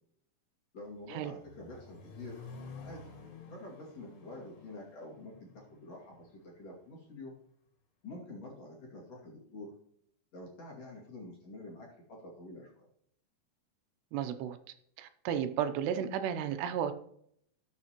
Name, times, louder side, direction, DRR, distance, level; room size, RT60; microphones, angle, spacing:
voice 1, 0.7-2.4 2.8-3.0 3.5-7.3 8.0-9.7 10.3-12.9, left 2 dB, 45° left, -3 dB, 3.0 m, -47 dB
Accelerating revving vroom, 0.8-6.9, left 4 dB, 80° left, 4.0 m, -51 dB
voice 2, 14.1-14.6 15.0-16.9, right 9 dB, 85° right, 9 dB, 2.8 m, -33 dB
18.5 x 7.1 x 3.0 m, 0.68 s
omnidirectional pair, 4.7 m